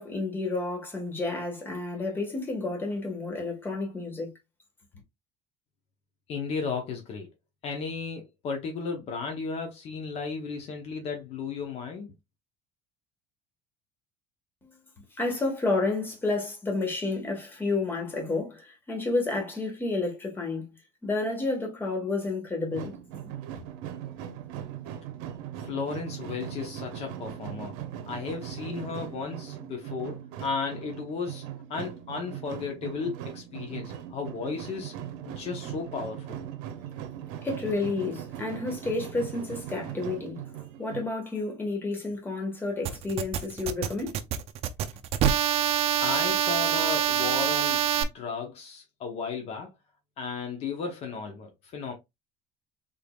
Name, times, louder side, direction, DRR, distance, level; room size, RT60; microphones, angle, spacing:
voice 1, 0.0-4.3 14.6-14.7 15.0-20.6 21.0-23.0 37.4-40.4 40.8-44.2, left 3 dB, 15° left, 1.5 m, -30 dB
voice 2, 6.3-7.3 7.6-12.1 25.6-27.7 28.1-31.4 31.7-35.0 35.3-36.4 46.0-49.7 50.2-51.9, left 5 dB, 50° left, 1.0 m, -34 dB
sound 1, 22.7-41.1, right 10 dB, 85° right, 0.7 m, -39 dB
sound 2, 42.8-48.0, right 10 dB, 50° right, 0.5 m, -26 dB
3.7 x 3.5 x 2.4 m
cardioid pair, 140°, 13 cm